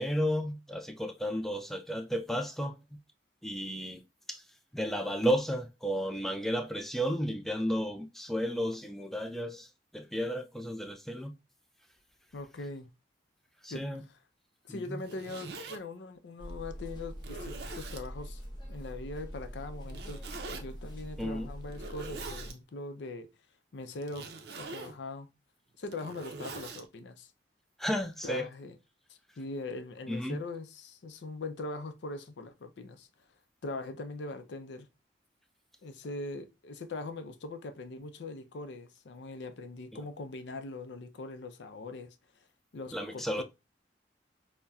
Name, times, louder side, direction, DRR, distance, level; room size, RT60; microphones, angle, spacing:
voice 1, 0.0-2.8 3.4-4.0 4.3-4.4 4.7-9.7 9.9-11.3 13.6-14.0 14.7-14.8 21.2-21.5 27.8-28.4 30.1-30.4 42.9-43.4, equal, ahead, 0.3 m, -32 dB
voice 2, 12.3-12.9 13.7-14.2 14.6-18.4 18.7-20.2 20.5-23.3 23.7-24.3 24.6-25.3 25.8-27.3 28.2-28.8 29.1-33.1 33.6-34.9 35.8-42.2 42.7-43.4, left 2 dB, 80° left, 0.5 m, -41 dB
Zipper (clothing), 14.9-15.8 16.5-16.6 17.2-18.1 19.9-20.6 21.7-22.6 24.0-25.0 25.7-26.8, right 3 dB, 65° right, 0.5 m, -43 dB
sound 1, 16.4-22.5, equal, 25° left, 0.7 m, -43 dB
5.4 x 2.1 x 2.3 m
head